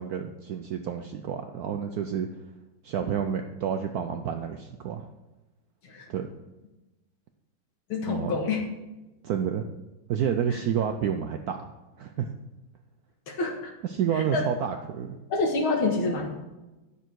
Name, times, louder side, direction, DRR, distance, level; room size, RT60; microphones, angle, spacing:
voice 1, 0.0-2.3 2.8-5.1 6.1-6.3 8.0-8.4 9.2-9.6 10.1-11.7 12.0-12.3 13.8-15.2, right 8 dB, 75° right, 6 dB, 0.8 m, -29 dB
voice 2, 7.9-8.6 10.5-10.6 13.3-13.7 14.1-14.5 15.3-16.3, left 3 dB, 90° left, 1 dB, 2.3 m, -27 dB
10.0 x 6.7 x 4.6 m, 1.1 s
omnidirectional pair, 2.2 m